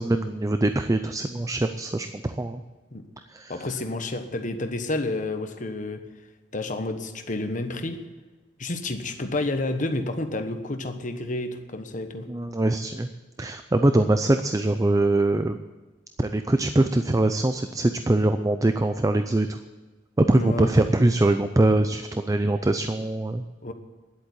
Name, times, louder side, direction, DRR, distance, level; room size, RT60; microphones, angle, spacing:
voice 1, 0.0-2.6 3.3-3.6 12.3-13.1 13.4-15.6 16.2-19.6 20.2-23.4, right 2 dB, 20° right, 9 dB, 0.5 m, -23 dB
voice 2, 3.5-6.0 6.5-8.0 8.6-12.3 13.9-14.1 20.3-20.7 23.6-23.7, left 2 dB, 45° left, 7 dB, 1.1 m, -30 dB
10.5 x 8.4 x 9.9 m, 1.2 s
head